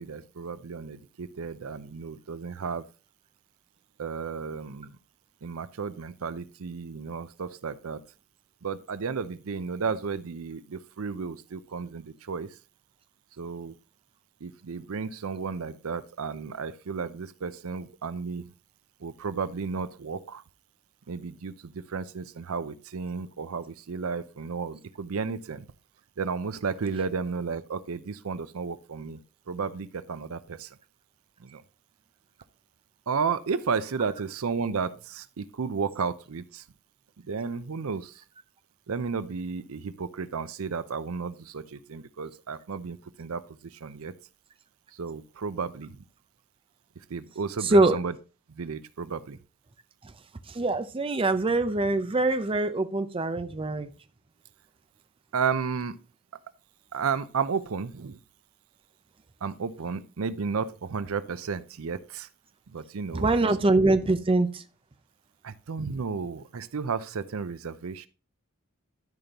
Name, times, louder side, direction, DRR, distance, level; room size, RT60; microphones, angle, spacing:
voice 1, 0.0-2.8 4.0-5.0 5.4-8.0 8.6-12.6 13.4-13.7 14.4-18.5 19.0-20.4 21.1-25.7 26.2-29.2 29.5-30.8 31.4-31.6 33.1-36.6 37.3-38.2 38.9-44.1 44.9-46.0 47.1-48.2 48.5-49.4 55.3-56.0 56.9-58.2 59.4-62.3 62.7-63.6 65.4-68.1, right 5 dB, 70° right, 15 dB, 0.6 m, -33 dB
voice 2, 50.5-53.9 63.2-64.6, right 2 dB, 25° right, 10 dB, 0.5 m, -23 dB
13.0 x 5.2 x 2.9 m, 0.32 s
head